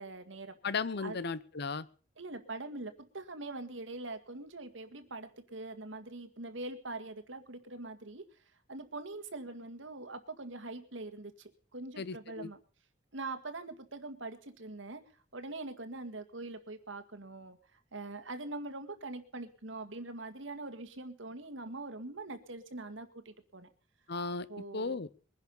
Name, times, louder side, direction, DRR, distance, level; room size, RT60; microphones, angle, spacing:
voice 1, 0.0-0.6 1.0-1.2 2.2-8.3 8.7-12.6 13.1-15.0 15.3-17.6 17.9-23.7 24.5-25.0, right 2 dB, 75° right, 8 dB, 1.9 m, -43 dB
voice 2, 0.6-1.9 12.0-12.5 24.1-24.5 24.7-25.1, left 4 dB, 60° left, 17 dB, 0.8 m, -35 dB
22.0 x 10.5 x 5.5 m, 0.41 s
head